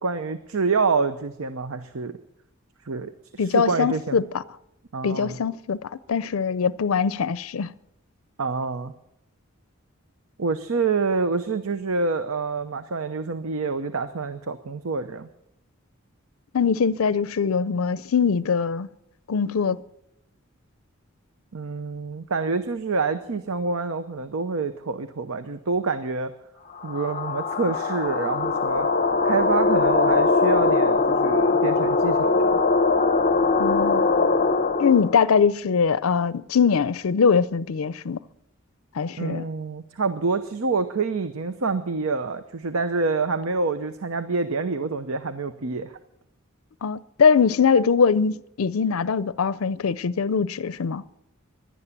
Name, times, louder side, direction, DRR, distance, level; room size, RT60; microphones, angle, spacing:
voice 1, 0.0-2.1 2.9-4.2 4.9-5.4 8.4-8.9 10.4-15.3 21.5-26.3 26.8-28.9 29.2-32.6 39.2-46.0, right 4 dB, 90° right, 0.8 m, -27 dB
voice 2, 3.4-4.4 5.0-7.7 16.5-18.9 19.3-19.8 33.6-34.1 34.8-38.2 38.9-39.4 46.8-51.0, left 6 dB, 80° left, 0.5 m, -22 dB
sound 1, 26.8-35.2, left 3 dB, 40° left, 0.8 m, -21 dB
16.5 x 11.5 x 7.3 m
head